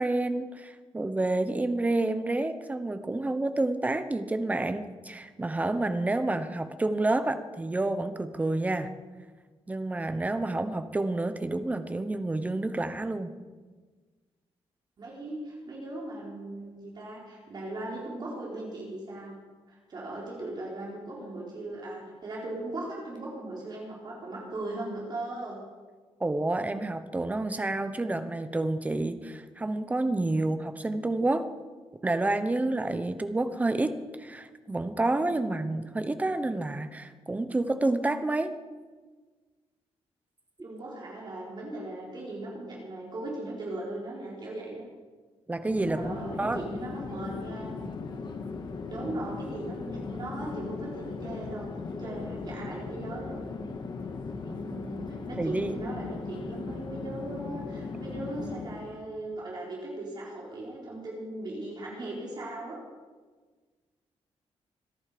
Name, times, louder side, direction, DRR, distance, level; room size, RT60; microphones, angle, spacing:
voice 1, 0.0-8.9 9.7-13.3 26.2-31.4 32.0-38.5 45.5-46.0 46.4-46.6 55.4-55.8, right 2 dB, 15° right, 10 dB, 0.9 m, -29 dB
voice 2, 15.0-19.4 19.7-25.6 40.6-44.9 45.9-47.7 48.9-51.7 52.0-53.4 54.5-62.8, right 2 dB, 40° right, -4 dB, 4.5 m, -38 dB
Chatter / Fixed-wing aircraft airplane, 45.5-59.0, left 4 dB, 45° left, 1.7 m, -38 dB
26.0 x 11.0 x 5.1 m, 1.4 s
wide cardioid pair, 155°, 11 cm